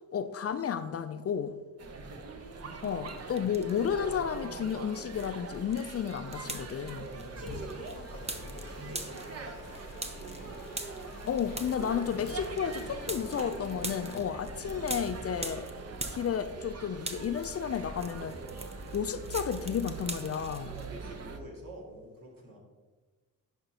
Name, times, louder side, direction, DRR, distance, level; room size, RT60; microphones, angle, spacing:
voice 1, 0.1-1.6 2.8-7.1 11.3-15.7 16.1-18.4 18.9-20.7, left 8 dB, 40° left, 0.4 m, -32 dB
sound 1, 1.8-21.4, right 4 dB, 45° right, 0.9 m, -42 dB
sound 2, 2.8-4.0 4.3-16.7 17.0-20.9, right 2 dB, 15° right, 0.8 m, -43 dB
voice 2, 7.0-10.6 20.7-22.6, right 1 dB, 65° right, 2.3 m, -48 dB
Mechanisms, 7.1-14.4, left 6 dB, 75° left, 0.8 m, -50 dB
10.5 x 5.1 x 2.9 m
supercardioid pair, 60°, 36 cm